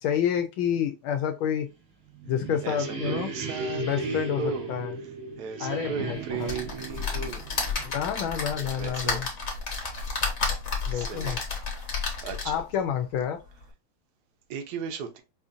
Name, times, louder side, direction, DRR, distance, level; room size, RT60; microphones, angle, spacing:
voice 1, 0.0-1.7 2.3-3.3 3.7-5.0 5.6-6.5 7.8-9.3 10.9-11.4 12.4-13.4, left 9 dB, 80° left, 1.3 m, -29 dB
sound 1, 1.9-8.6, right 3 dB, 85° right, 2.3 m, -36 dB
voice 2, 2.6-4.7 5.4-7.4 7.8-7.9 8.6-9.2 10.9-11.4 11.8-12.5 14.5-15.2, right 6 dB, 65° right, 1.1 m, -36 dB
sound 2, 6.4-12.7 13.2-13.3 13.6-13.7, left 4 dB, 40° left, 1.3 m, -31 dB
5.4 x 2.5 x 2.5 m
omnidirectional pair, 2.3 m